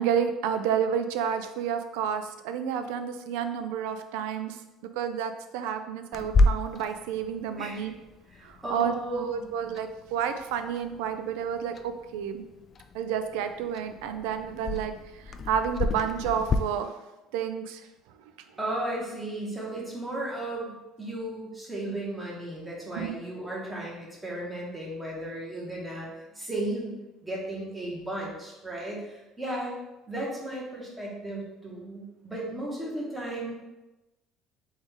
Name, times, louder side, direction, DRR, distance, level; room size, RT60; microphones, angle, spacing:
voice 1, 0.0-7.9 8.4-12.4 12.9-16.9 17.3-17.8 23.0-23.2, right 8 dB, 90° right, 8 dB, 0.4 m, -30 dB
Clock, 6.1-16.6, left 2 dB, 40° left, 0.3 m, -32 dB
voice 2, 7.6-7.9 8.3-9.4 18.6-29.7 30.1-33.6, right 1 dB, 15° right, -4 dB, 1.4 m, -35 dB
3.8 x 3.5 x 3.6 m, 1.0 s
cardioid pair, 115°, 0 cm